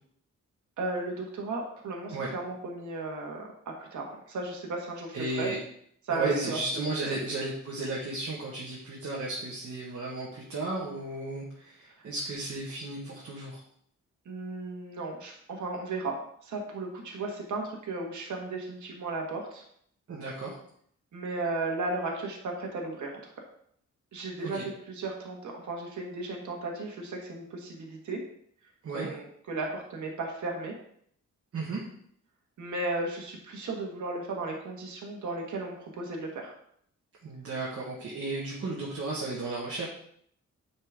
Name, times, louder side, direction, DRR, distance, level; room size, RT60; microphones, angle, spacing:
voice 1, 0.8-5.5 6.1-6.6 6.9-7.1 14.2-16.2 16.4-19.6 21.1-23.1 24.1-28.2 28.9-30.7 32.6-36.5, right 2 dB, 75° right, 0 dB, 1.6 m, -35 dB
voice 2, 5.1-5.6 6.1-13.6 20.1-20.5 24.4-24.6 28.8-29.1 31.5-31.8 37.2-39.9, right 2 dB, 55° right, -4 dB, 1.5 m, -34 dB
9.6 x 4.4 x 3.6 m, 0.66 s
wide cardioid pair, 150°, 30 cm